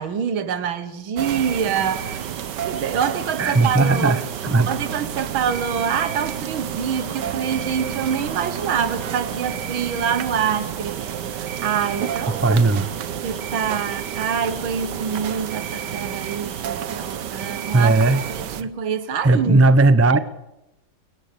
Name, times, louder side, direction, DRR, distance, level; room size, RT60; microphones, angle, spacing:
voice 1, 0.0-2.2 2.7-4.2 4.7-12.6 13.2-19.7, right 7 dB, 85° right, 2.1 m, -26 dB
sound 1, 1.2-18.6, right 9 dB, 65° right, 1.5 m, -30 dB
sound 2, 1.9-17.9, left 1 dB, 15° left, 3.0 m, -49 dB
voice 2, 3.4-4.7 12.4-12.9 17.7-18.2 19.2-20.2, right 2 dB, 25° right, 0.3 m, -16 dB
29.5 x 15.5 x 6.7 m
omnidirectional pair, 2.1 m